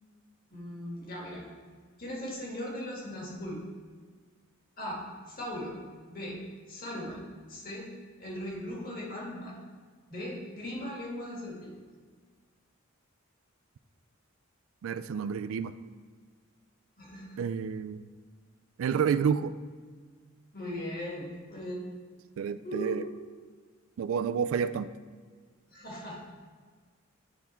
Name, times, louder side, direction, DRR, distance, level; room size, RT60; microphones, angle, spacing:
voice 1, 0.5-1.5 2.0-3.7 4.8-5.8 6.1-6.4 6.7-7.9 8.2-9.6 10.1-11.8 17.0-17.4 20.5-21.9 22.6-23.0 25.7-26.3, equal, 45° left, -3 dB, 1.8 m, -38 dB
voice 2, 14.8-15.7 17.4-18.1 18.8-19.5 22.4-23.0 24.0-24.9, right 7 dB, 75° right, 12 dB, 0.3 m, -29 dB
9.6 x 3.6 x 4.3 m, 1.6 s
head